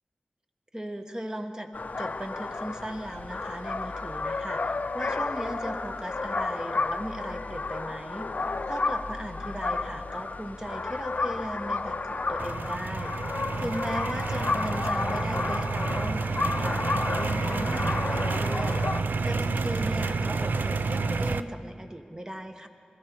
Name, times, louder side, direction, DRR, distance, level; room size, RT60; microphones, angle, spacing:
voice 1, 0.7-1.7 2.0-8.3 8.6-13.1 13.6-18.8 19.2-22.7, equal, 20° right, 5 dB, 1.3 m, -37 dB
sound 1, 1.7-19.0, left 3 dB, 60° left, 0.5 m, -32 dB
sound 2, 12.4-21.4, right 4 dB, 80° right, 0.4 m, -29 dB
20.5 x 14.0 x 4.6 m, 2.2 s
cardioid pair, 45°, 3 cm